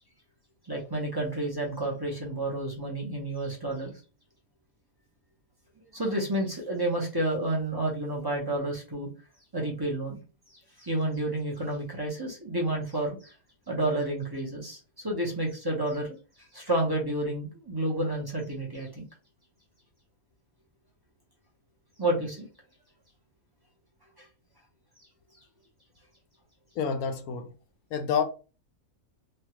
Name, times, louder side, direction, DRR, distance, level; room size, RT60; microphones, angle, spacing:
voice 1, 0.7-3.9 5.8-9.1 9.5-10.2 10.5-13.3 13.7-19.1 22.0-22.5 24.2-24.3, right 1 dB, 25° right, 0.5 m, -30 dB
voice 2, 26.8-27.5 27.9-28.2, left 6 dB, 85° left, 1.1 m, -28 dB
3.2 x 2.3 x 2.9 m
omnidirectional pair, 1.5 m